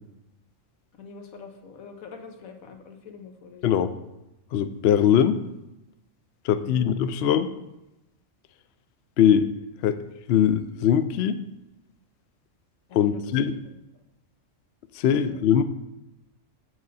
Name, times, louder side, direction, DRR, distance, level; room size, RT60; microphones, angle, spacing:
voice 1, 0.9-3.8 6.6-6.9 12.9-13.3 15.2-15.4, left 5 dB, 80° left, 5 dB, 1.4 m, -44 dB
voice 2, 3.6-3.9 4.5-5.4 6.4-7.5 9.2-9.5 9.8-10.0 10.3-11.4 12.9-13.6 14.9-15.6, left 9 dB, 65° left, 11 dB, 0.7 m, -21 dB
7.8 x 7.5 x 4.1 m, 0.93 s
omnidirectional pair, 1.4 m